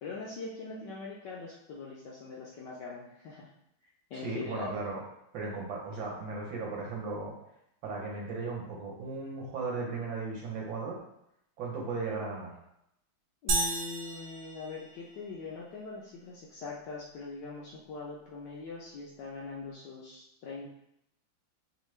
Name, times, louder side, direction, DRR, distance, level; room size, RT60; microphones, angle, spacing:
voice 1, 0.0-3.5 4.1-4.7 13.4-20.7, left 4 dB, 70° left, -4 dB, 1.1 m, -42 dB
voice 2, 4.1-5.0 5.3-7.4 7.8-11.0 11.6-12.5, right 3 dB, 65° right, -3 dB, 1.6 m, -36 dB
sound 1, 13.5-15.4, right 3 dB, 85° right, 1.6 m, -33 dB
5.3 x 2.2 x 3.2 m, 0.79 s
omnidirectional pair, 2.4 m